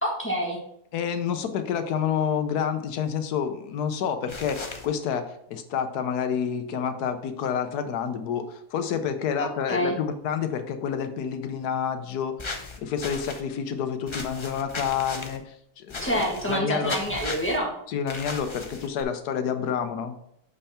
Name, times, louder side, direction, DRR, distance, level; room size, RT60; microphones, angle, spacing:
voice 1, 0.0-0.6 9.7-9.9 16.0-17.7, equal, 10° left, -2 dB, 1.6 m, -26 dB
voice 2, 0.9-17.0 17.9-20.1, left 7 dB, 90° left, 8 dB, 1.3 m, -29 dB
sound 1, 4.3-4.9 12.4-13.4 14.1-15.4 15.9-16.6 16.9-17.6 18.1-19.0, left 3 dB, 30° left, 0.5 m, -36 dB
6.8 x 5.5 x 4.3 m, 0.75 s
omnidirectional pair, 1.6 m